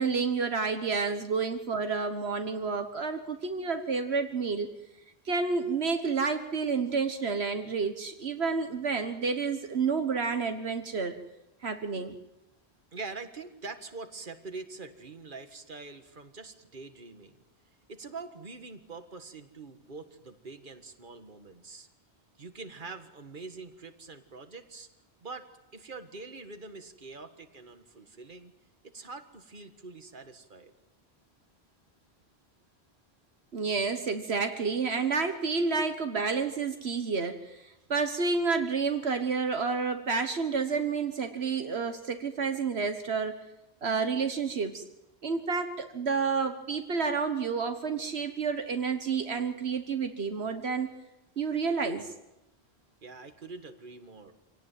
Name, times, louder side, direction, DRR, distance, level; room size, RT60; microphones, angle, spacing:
voice 1, 0.0-4.7 5.2-11.1 11.6-12.2 33.5-43.4 43.8-44.8 45.2-50.9 51.4-52.1, right 5 dB, 75° right, 7 dB, 1.6 m, -30 dB
voice 2, 12.9-17.4 17.9-21.9 22.4-24.9 25.2-28.5 28.8-30.7 53.0-54.3, right 4 dB, 50° right, 8 dB, 1.9 m, -44 dB
26.5 x 18.0 x 9.3 m, 0.94 s
omnidirectional pair, 1.1 m